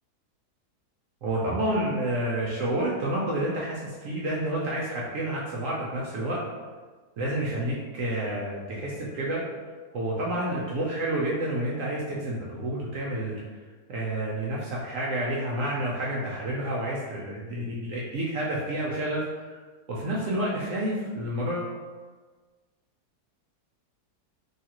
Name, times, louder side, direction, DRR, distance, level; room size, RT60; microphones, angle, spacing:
voice 1, 1.2-6.4 7.2-9.4 9.9-13.4 13.9-19.6 19.9-21.7, right 1 dB, 70° right, -5 dB, 0.8 m, -29 dB
3.2 x 2.3 x 2.8 m, 1.4 s
omnidirectional pair, 1.7 m